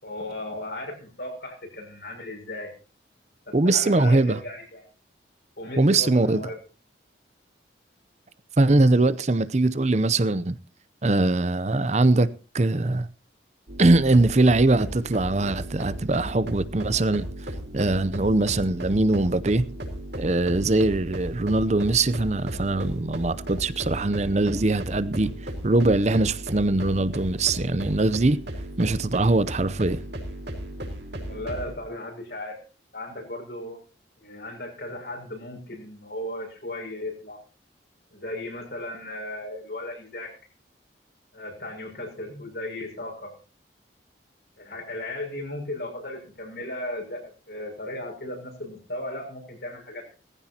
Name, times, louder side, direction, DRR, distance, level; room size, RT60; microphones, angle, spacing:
voice 1, 0.0-2.7 3.5-4.8 5.6-6.6 31.3-32.6 32.9-33.8 34.2-37.4 38.1-40.3 41.3-43.4 44.6-50.1, left 1 dB, 55° left, 6.5 m, -36 dB
voice 2, 3.5-4.4 5.8-6.4 8.6-10.6 11.0-12.3 12.5-13.1 13.8-17.3 17.7-19.6 20.2-25.3 25.6-28.4 28.8-30.0, right 2 dB, 35° right, 0.6 m, -21 dB
sound 1, 13.7-31.7, right 1 dB, 65° right, 4.0 m, -35 dB
19.0 x 15.5 x 2.9 m
head